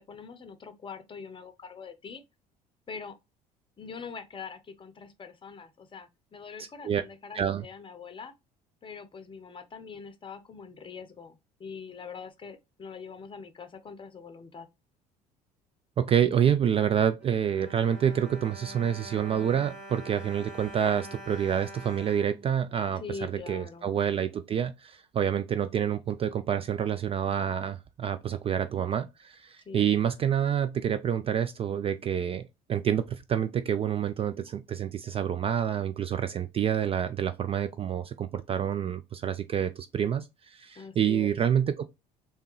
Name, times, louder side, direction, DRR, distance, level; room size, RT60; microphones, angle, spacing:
voice 1, 0.0-2.2 2.9-3.2 3.8-8.3 8.8-14.7 23.0-23.9 29.7-30.0 40.8-41.3, left 5 dB, 25° left, 0.7 m, -43 dB
voice 2, 6.6-7.0 7.3-7.6 16.0-41.8, right 9 dB, 30° right, 0.3 m, -28 dB
Bowed string instrument, 17.2-23.2 23.9-24.0 24.3-24.4, right 1 dB, 60° right, 1.8 m, -45 dB
3.3 x 2.8 x 3.1 m
figure-of-eight pair, 60°, 21 cm